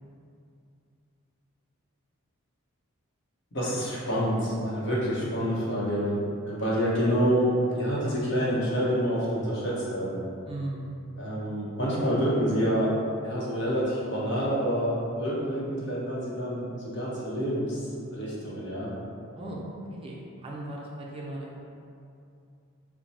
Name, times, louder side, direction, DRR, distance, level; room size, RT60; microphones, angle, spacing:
voice 1, 3.5-6.2 6.5-10.2 11.2-12.9 13.2-17.8 18.1-18.9, equal, 55° left, -6 dB, 1.0 m, -27 dB
voice 2, 10.5-11.0 19.3-21.5, right 1 dB, 25° right, -3 dB, 0.4 m, -37 dB
4.4 x 2.1 x 4.1 m, 2.5 s
head